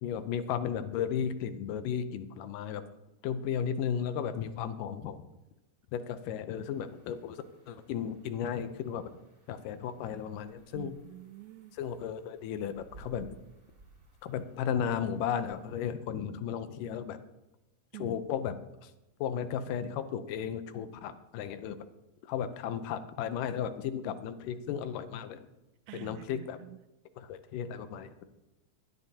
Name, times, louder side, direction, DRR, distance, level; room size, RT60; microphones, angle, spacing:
voice 1, 0.0-2.8 3.2-5.2 5.9-9.1 9.5-10.9 11.8-13.3 14.2-17.2 18.0-18.6 18.8-18.9 19.2-21.8 22.2-25.4 25.9-26.6 27.2-28.2, left 8 dB, 90° left, 11 dB, 2.4 m, -34 dB
sound 1, 6.5-15.9, right 2 dB, 25° right, 2.0 m, -59 dB
voice 2, 10.7-11.8 17.9-18.5 25.9-26.8, right 16 dB, 80° right, 12 dB, 1.8 m, -47 dB
18.0 x 11.5 x 2.8 m, 0.95 s
omnidirectional pair, 3.7 m